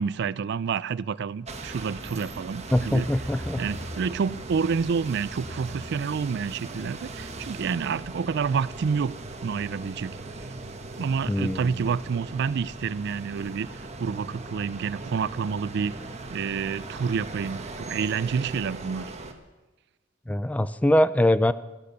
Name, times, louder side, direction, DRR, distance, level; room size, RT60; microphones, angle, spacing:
voice 1, 0.0-3.1 3.6-9.1 9.4-10.4 11.0-15.9 16.3-19.1, right 6 dB, 60° right, 20 dB, 0.4 m, -29 dB
sound 1, 1.5-19.3, right 2 dB, 35° right, 1.3 m, -39 dB
voice 2, 2.7-3.6 11.3-11.7 20.3-21.5, left 1 dB, 10° left, 15 dB, 0.4 m, -22 dB
14.0 x 11.5 x 6.8 m, 1.1 s
head